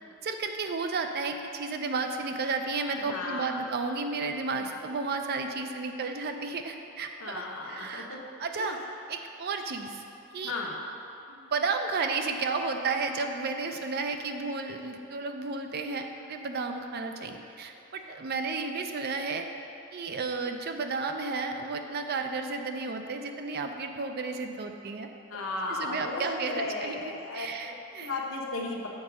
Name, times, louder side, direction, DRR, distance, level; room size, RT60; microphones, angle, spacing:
voice 1, 0.2-8.8 9.1-10.0 10.3-10.5 11.3-19.5 19.9-25.1 25.7-28.2, right 4 dB, 45° right, 5 dB, 0.4 m, -33 dB
voice 2, 3.0-3.6 4.5-4.7 7.2-8.2 8.6-8.8 10.4-10.8 25.3-27.7 28.0-28.9, left 2 dB, 75° left, -1 dB, 1.0 m, -35 dB
7.3 x 4.0 x 6.0 m, 2.8 s
head